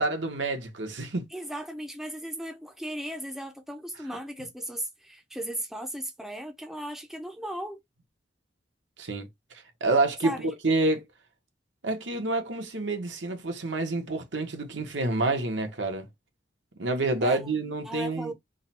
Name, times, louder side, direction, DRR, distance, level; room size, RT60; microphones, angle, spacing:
voice 1, 0.0-1.2 9.0-9.3 9.8-10.4 10.6-11.0 11.8-16.1 16.8-18.3, right 2 dB, 85° right, 1.1 m, -28 dB
voice 2, 1.3-7.8 10.2-10.5 17.2-18.3, right 1 dB, ahead, 0.6 m, -37 dB
3.7 x 2.2 x 4.2 m
head